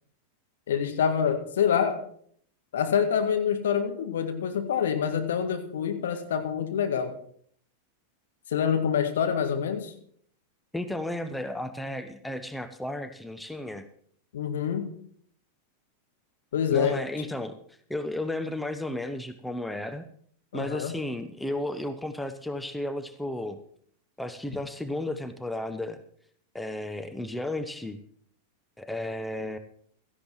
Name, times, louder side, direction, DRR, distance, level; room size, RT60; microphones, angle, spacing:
voice 1, 0.7-2.0 2.7-7.1 8.5-9.9 14.3-14.9 16.5-17.3 20.5-20.9, left 7 dB, 60° left, 5 dB, 1.8 m, -26 dB
voice 2, 10.7-13.9 16.7-17.6 17.9-20.0 20.5-23.6 24.2-26.0 26.5-28.0 28.8-29.6, left 1 dB, 5° left, 9 dB, 0.8 m, -33 dB
16.5 x 14.0 x 3.1 m, 0.62 s
figure-of-eight pair, 90°, 0 cm